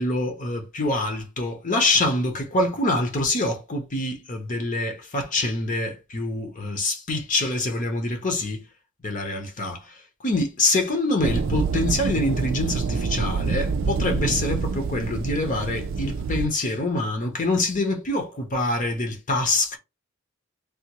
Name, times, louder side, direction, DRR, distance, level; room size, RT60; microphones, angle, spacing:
voice 1, 0.0-8.6 9.0-19.8, left 2 dB, 40° left, 0.8 m, -25 dB
sound 1, 11.2-16.5, right 4 dB, 85° right, 0.4 m, -26 dB
3.4 x 2.3 x 2.9 m
head